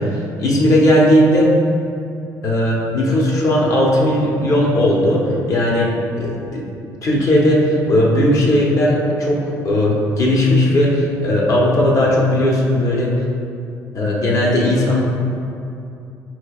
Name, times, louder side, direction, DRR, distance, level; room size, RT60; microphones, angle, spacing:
voice 1, 0.0-1.5 2.4-6.6 7.0-13.1 13.9-15.0, left 1 dB, 45° left, -3 dB, 0.8 m, -16 dB
4.5 x 3.1 x 2.4 m, 2.6 s
cardioid pair, 90°, 7 cm